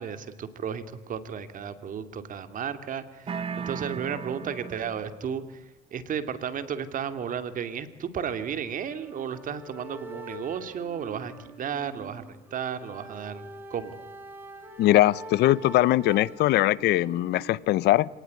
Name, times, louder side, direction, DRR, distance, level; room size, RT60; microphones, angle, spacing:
voice 1, 0.0-5.6 5.9-13.4 13.7-14.0, right 7 dB, 50° right, 10 dB, 2.7 m, -33 dB
sound 1, 3.3-5.2, right 6 dB, 35° right, 1.1 m, -36 dB
sound 2, 8.7-17.5, right 1 dB, 10° right, 6.4 m, -45 dB
voice 2, 14.8-18.1, left 15 dB, 80° left, 21 dB, 0.8 m, -21 dB
26.5 x 19.0 x 9.7 m, 1.1 s
cardioid pair, 110°, 17 cm